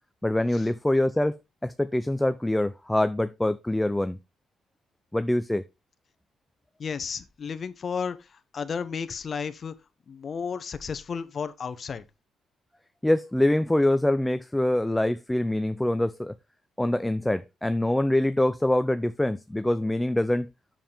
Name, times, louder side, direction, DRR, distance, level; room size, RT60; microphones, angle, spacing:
voice 1, 0.2-4.2 5.1-5.6 13.0-16.3 16.8-20.5, left 1 dB, 10° left, 0.5 m, -24 dB
voice 2, 6.8-8.3 8.5-9.7 10.1-12.0, left 6 dB, 45° left, 1.0 m, -33 dB
7.4 x 7.3 x 3.5 m
cardioid pair, 90°, 0 cm